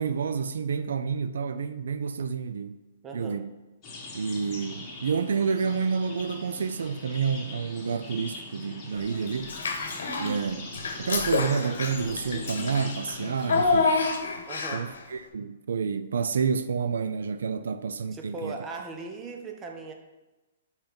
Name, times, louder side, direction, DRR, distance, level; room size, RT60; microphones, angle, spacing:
voice 1, 0.0-2.8 3.1-3.5 4.1-9.5 10.2-10.7 11.0-14.0 14.7-18.5, right 6 dB, 85° right, 0.4 m, -29 dB
voice 2, 3.0-3.4 14.5-14.9 18.1-19.9, right 4 dB, 20° right, 0.8 m, -38 dB
sound 1, 3.8-14.1, left 2 dB, 20° left, 1.7 m, -42 dB
Child speech kid speaking / Bathtub (filling or washing), 9.4-10.4 10.7-15.0, left 4 dB, 85° left, 1.0 m, -28 dB
5.5 x 4.5 x 5.2 m
hypercardioid pair, 155°, 0 cm